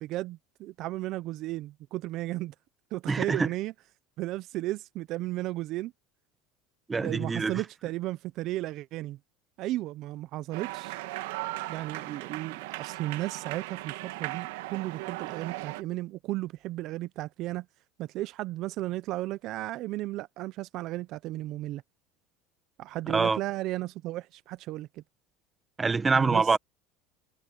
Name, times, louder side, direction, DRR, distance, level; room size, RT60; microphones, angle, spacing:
voice 1, 0.0-2.5 2.9-3.7 4.2-5.9 7.0-9.2 9.6-11.0 11.7-17.7 18.0-21.8 22.8-25.0 26.1-26.5, right 16 dB, 50° right, 0.5 m, -34 dB
voice 2, 3.1-3.5 6.9-7.6 23.1-23.4 25.8-26.6, right 4 dB, 15° right, 0.8 m, -25 dB
sound 1, 10.5-15.8, right 19 dB, 85° right, 1.7 m, -37 dB
supercardioid pair, 140°, 0 cm